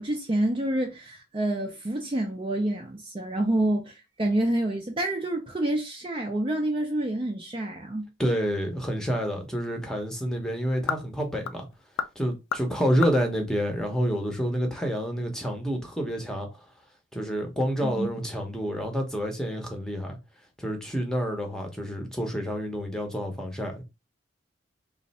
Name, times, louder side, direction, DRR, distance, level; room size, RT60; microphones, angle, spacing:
voice 1, 0.0-8.1 17.8-18.1, right 1 dB, 25° right, 0.5 m, -28 dB
voice 2, 8.2-11.7 12.2-16.6 17.1-20.2 20.6-23.8, equal, 5° left, 0.8 m, -28 dB
sound 1, 8.8-14.6, left 6 dB, 85° left, 0.4 m, -38 dB
3.2 x 2.4 x 4.0 m
head